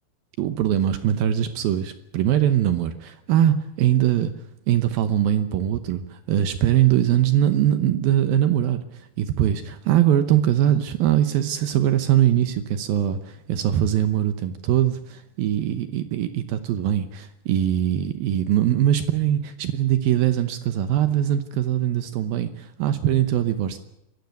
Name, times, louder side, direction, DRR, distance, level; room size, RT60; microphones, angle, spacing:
voice 1, 0.4-4.3 4.7-23.8, right 11 dB, 70° right, 10 dB, 2.5 m, -22 dB
23.0 x 14.0 x 9.4 m, 0.84 s
omnidirectional pair, 5.0 m